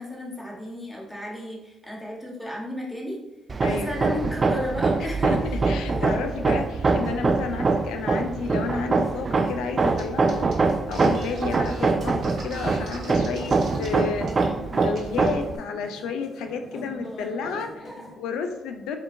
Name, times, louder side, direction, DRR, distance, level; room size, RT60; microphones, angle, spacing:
voice 1, 0.0-3.2 3.7-5.4 5.8-6.1 16.7-18.0, left 1 dB, 10° left, -3 dB, 1.2 m, -35 dB
Hammer, 3.5-15.6, right 3 dB, 35° right, 0.3 m, -24 dB
voice 2, 3.6-3.9 5.2-10.5 10.9-14.3 14.7-17.7 18.2-19.0, left 5 dB, 90° left, 6 dB, 0.4 m, -31 dB
sound 1, 9.0-18.1, equal, 40° left, 1.3 m, -45 dB
sound 2, 10.0-10.1 10.3-13.9 14.2-14.5 14.8-15.3, right 2 dB, 70° right, 1.1 m, -40 dB
4.9 x 2.8 x 2.7 m, 0.97 s
cardioid pair, 90°, 0 cm